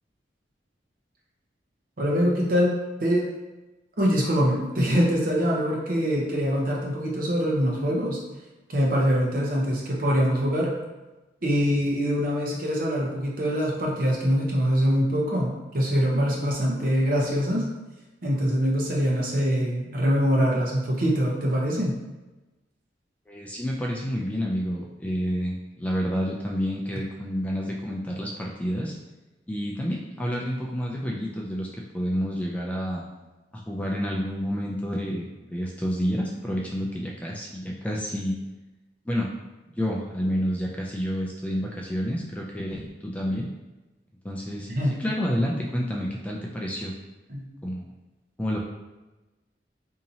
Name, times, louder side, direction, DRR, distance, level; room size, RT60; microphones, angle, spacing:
voice 1, 2.0-2.7 3.0-3.2 4.0-8.2 8.7-10.7 11.4-17.6 18.2-22.0 44.7-45.0 47.3-47.4, equal, 50° right, -3 dB, 0.8 m, -24 dB
voice 2, 23.3-28.9 29.5-31.7 31.9-33.0 33.5-38.4 39.1-39.3 39.8-43.5 44.2-44.7 45.0-46.9 47.6-47.9 48.4-48.6, equal, 10° left, -2 dB, 0.3 m, -29 dB
4.1 x 2.8 x 2.7 m, 1.1 s
head